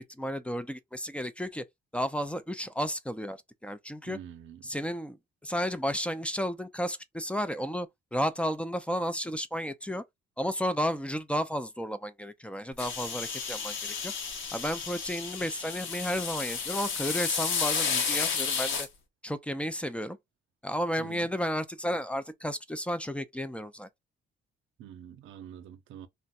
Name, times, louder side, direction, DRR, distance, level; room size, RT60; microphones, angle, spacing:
voice 1, 0.0-1.6 1.9-3.4 3.6-4.2 4.6-5.2 5.4-10.0 10.4-14.1 14.5-18.9 19.2-20.2 20.6-23.9, equal, 5° left, 0.4 m, -32 dB
voice 2, 4.1-4.6 21.0-21.3 24.8-26.1, right 10 dB, 90° right, 0.5 m, -46 dB
sound 1, 12.8-18.9, left 6 dB, 80° left, 1.0 m, -32 dB
2.5 x 2.2 x 4.0 m
cardioid pair, 90°, 20 cm